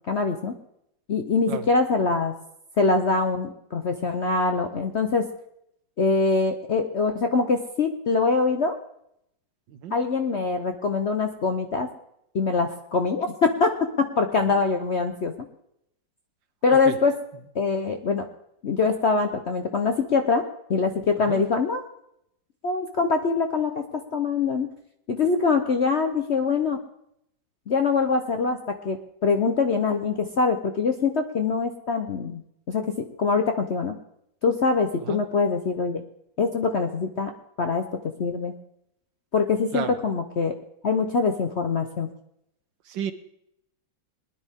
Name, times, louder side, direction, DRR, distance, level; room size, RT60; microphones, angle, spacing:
voice 1, 0.1-0.5 1.1-2.3 2.8-5.3 6.0-8.7 9.9-11.9 12.3-13.7 14.2-15.3 16.6-17.1 17.5-18.3 18.6-20.4 20.7-21.8 22.6-23.8 24.1-24.7 25.1-26.8 27.7-29.0 29.2-32.4 32.7-34.0 34.4-36.0 36.4-37.3 37.6-37.9 38.2-38.6 39.3-40.5 40.8-42.1, left 4 dB, 55° left, 6 dB, 0.8 m, -23 dB
voice 2, 1.5-1.6 9.8-9.9 16.9-17.0 21.3-21.4 35.1-35.2 39.7-39.9 42.9-43.1, right 9 dB, 80° right, 10 dB, 1.6 m, -31 dB
21.0 x 10.5 x 3.6 m, 0.77 s
omnidirectional pair, 2.1 m